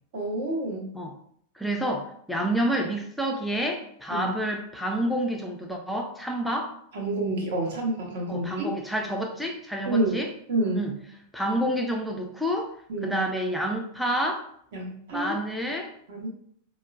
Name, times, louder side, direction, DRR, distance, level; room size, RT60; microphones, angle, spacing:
voice 1, 0.1-0.9 4.1-4.4 6.9-8.7 9.9-10.2 10.5-10.9 12.9-13.2 14.7-15.4 16.1-16.3, right 2 dB, 55° right, 0 dB, 0.9 m, -28 dB
voice 2, 1.6-6.8 8.3-10.3 10.7-10.9 11.3-12.7 13.0-14.5 15.1-15.9, right 1 dB, ahead, 1 dB, 0.5 m, -28 dB
4.5 x 2.1 x 2.3 m, 0.65 s
figure-of-eight pair, 90°, 0 cm